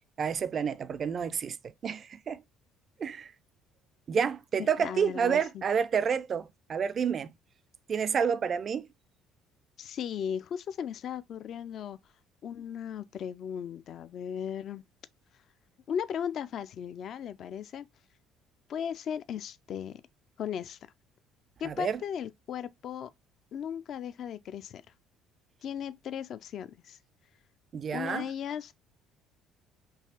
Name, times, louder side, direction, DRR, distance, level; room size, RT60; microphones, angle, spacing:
voice 1, 0.2-2.4 3.0-3.3 4.1-7.3 7.9-8.9 21.6-22.0 27.7-28.2, right 7 dB, 40° right, 0.3 m, -29 dB
voice 2, 4.6-5.6 9.8-12.0 12.4-14.8 15.9-17.9 18.7-20.0 20.4-20.8 21.6-23.1 23.5-24.8 25.6-27.0 27.9-28.7, left 8 dB, 45° left, 0.3 m, -36 dB
4.6 x 2.9 x 2.8 m
figure-of-eight pair, 50°, 0 cm